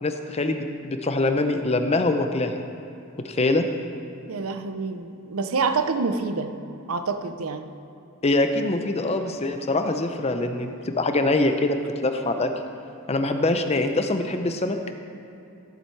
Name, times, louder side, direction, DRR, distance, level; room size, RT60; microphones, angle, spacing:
voice 1, 0.0-2.5 3.2-3.7 8.2-11.8 12.0-12.5 13.1-14.8, left 2 dB, 30° left, 7 dB, 0.6 m, -24 dB
voice 2, 4.3-6.5 6.9-7.7, right 4 dB, 70° right, 9 dB, 0.6 m, -27 dB
15.0 x 7.4 x 4.6 m, 2.8 s
head